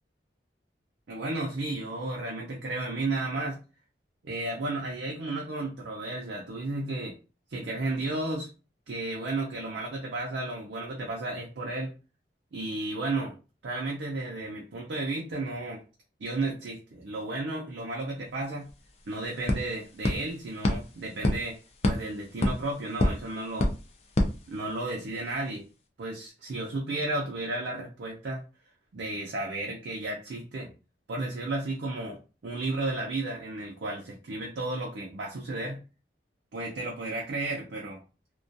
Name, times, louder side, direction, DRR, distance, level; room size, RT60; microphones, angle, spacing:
voice 1, 1.1-3.6 4.2-7.2 7.5-8.5 8.9-11.9 12.5-13.3 13.6-15.8 16.2-18.7 19.1-21.6 21.8-23.7 24.5-25.6 26.0-28.4 28.9-30.7 31.1-35.8 36.5-38.0, right 2 dB, 75° right, -1 dB, 0.5 m, -33 dB
sound 1, 18.4-18.5 18.7-25.1, left 1 dB, 35° left, 0.3 m, -30 dB
2.3 x 2.2 x 2.6 m, 0.33 s
head